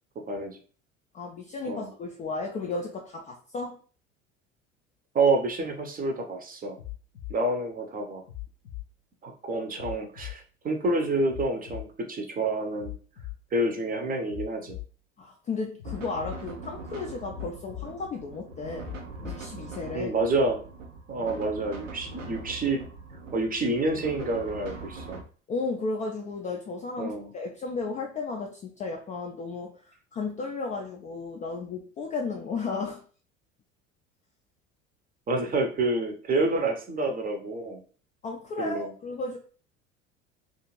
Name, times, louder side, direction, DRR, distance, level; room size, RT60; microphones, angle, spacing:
voice 1, 0.3-0.6 1.7-1.9 5.1-6.8 7.3-8.2 9.2-12.9 13.5-14.8 19.9-20.6 21.1-22.8 23.3-25.2 27.0-27.3 35.3-37.8 38.6-38.9, right 2 dB, 25° right, 3 dB, 0.7 m, -28 dB
voice 2, 1.1-3.8 15.2-18.9 19.2-20.1 25.5-33.0 38.2-39.4, left 4 dB, 20° left, 1 dB, 0.3 m, -34 dB
sound 1, 6.8-7.4 8.3-8.9 9.8-10.4 11.3-11.9 12.8-13.4 14.3-14.9 15.8-16.4 17.3-17.9 18.8-19.4 20.3-20.4, left 16 dB, 65° left, 0.6 m, -39 dB
sound 2, 15.8-25.2, right 3 dB, 85° right, 0.6 m, -42 dB
2.5 x 2.4 x 3.1 m, 0.41 s
figure-of-eight pair, 65°, 37 cm